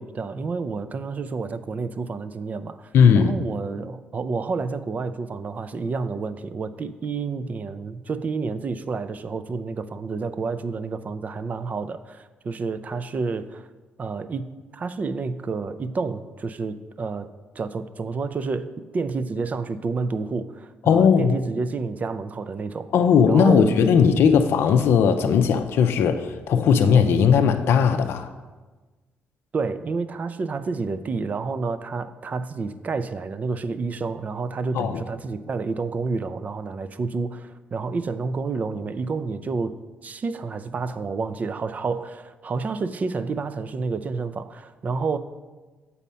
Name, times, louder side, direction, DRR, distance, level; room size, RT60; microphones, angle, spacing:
voice 1, 0.0-13.7 14.0-17.3 17.6-22.9 23.3-23.7 29.5-39.7 40.0-45.2, right 4 dB, 40° right, 0.4 m, -29 dB
voice 2, 2.9-3.3 20.9-21.4 22.9-28.3 34.7-35.0, left 6 dB, 75° left, 0.4 m, -18 dB
7.2 x 4.1 x 5.5 m
cardioid pair, 90°, 4 cm